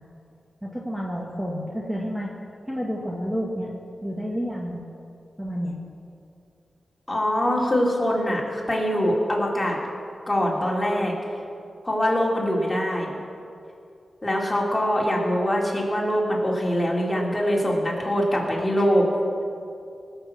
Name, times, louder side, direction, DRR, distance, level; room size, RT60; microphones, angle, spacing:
voice 1, 0.6-2.3 2.7-3.7 4.0-4.8 5.4-5.7, equal, 5° right, -2 dB, 1.8 m, -29 dB
voice 2, 7.1-9.8 10.3-11.2 11.8-13.1 14.2-19.1, equal, 20° left, -3 dB, 3.3 m, -23 dB
19.5 x 6.5 x 7.5 m, 2.5 s
cardioid pair, 70°, 0 cm